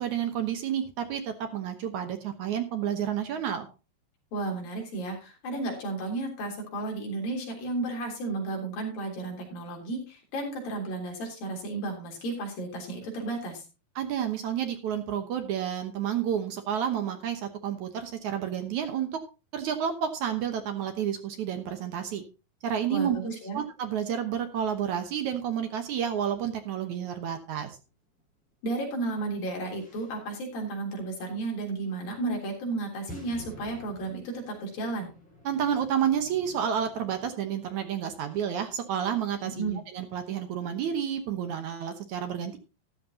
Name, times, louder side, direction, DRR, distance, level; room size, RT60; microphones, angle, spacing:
voice 1, 0.0-3.7 14.0-19.2 19.5-22.2 22.6-23.2 23.5-27.8 35.5-42.6, right 9 dB, 65° right, 7 dB, 2.0 m, -30 dB
voice 2, 4.3-13.7 22.9-23.6 28.6-35.1 39.6-39.8, right 2 dB, 65° left, 0 dB, 5.1 m, -33 dB
sound 1, 24.5-28.4 28.7-30.4 30.9-31.0 31.9-32.0 32.9-39.8, equal, ahead, 7.6 m, -53 dB
13.5 x 11.5 x 2.8 m, 0.30 s
omnidirectional pair, 4.5 m